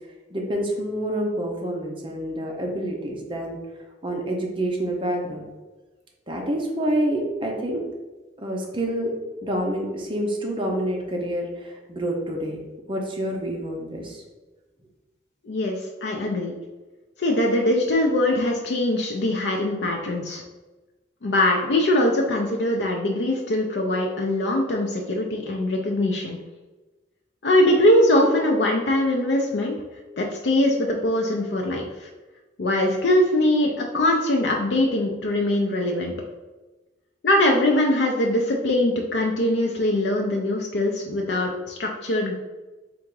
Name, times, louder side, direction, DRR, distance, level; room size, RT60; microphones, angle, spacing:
voice 1, 0.3-3.6 4.0-5.5 6.3-7.8 8.4-9.1 9.4-12.6 12.9-14.2, right 1 dB, 30° right, 0 dB, 0.7 m, -27 dB
voice 2, 15.4-16.5 17.2-20.4 21.2-26.4 27.4-29.8 30.2-32.1 32.6-36.1 37.2-42.3, left 1 dB, 65° left, 0 dB, 0.5 m, -22 dB
3.5 x 2.5 x 4.6 m, 1.2 s
head